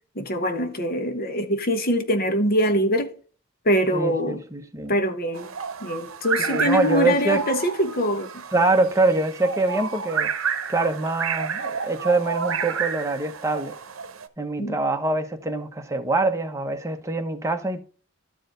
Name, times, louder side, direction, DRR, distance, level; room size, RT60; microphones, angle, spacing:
voice 1, 0.1-3.1 3.6-4.4 4.9-5.5 5.8-8.4 14.6-14.8, equal, 45° left, 1.2 m, -23 dB
voice 2, 3.9-4.9 6.4-7.4 8.5-10.3 10.7-13.7 14.4-17.8, right 3 dB, 15° right, 1.0 m, -24 dB
sound 1, 5.3-14.3, right 6 dB, 70° right, 0.9 m, -30 dB
12.5 x 4.9 x 3.8 m
head